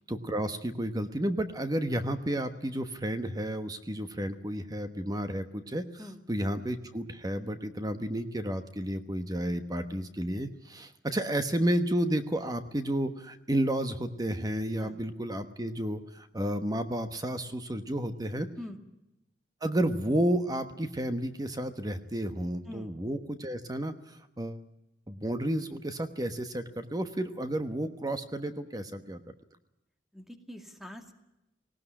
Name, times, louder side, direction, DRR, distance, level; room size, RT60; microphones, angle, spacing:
voice 1, 0.1-18.5 19.6-24.6 25.1-29.2, right 1 dB, 20° right, 9 dB, 1.2 m, -31 dB
voice 2, 30.1-31.1, left 1 dB, ahead, 5 dB, 2.2 m, -44 dB
19.0 x 18.5 x 10.0 m, 0.88 s
head